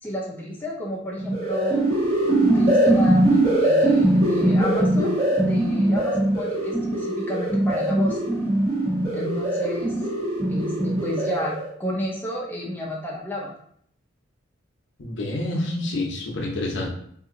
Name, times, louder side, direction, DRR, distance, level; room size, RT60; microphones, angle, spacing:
voice 1, 0.0-1.8 2.4-8.2 9.1-9.9 10.5-11.5 11.8-13.5 15.5-15.9, left 1 dB, 10° left, -4 dB, 0.5 m, -31 dB
sound 1, 1.2-11.7, right 1 dB, 30° right, 1.3 m, -21 dB
voice 2, 15.0-16.9, left 2 dB, 65° left, -1 dB, 0.7 m, -28 dB
2.7 x 2.5 x 3.7 m, 0.65 s
head